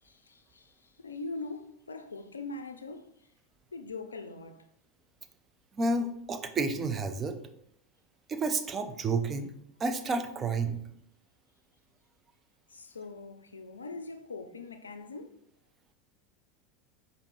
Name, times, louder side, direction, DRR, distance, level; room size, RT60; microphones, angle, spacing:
voice 1, 0.0-3.3 3.7-4.7 12.7-15.4, left 3 dB, 85° left, 0.3 m, -42 dB
voice 2, 5.8-7.4 8.3-9.5 9.8-10.8, right 3 dB, 30° right, 0.5 m, -30 dB
5.0 x 2.6 x 3.1 m
figure-of-eight pair, 80°, 0 cm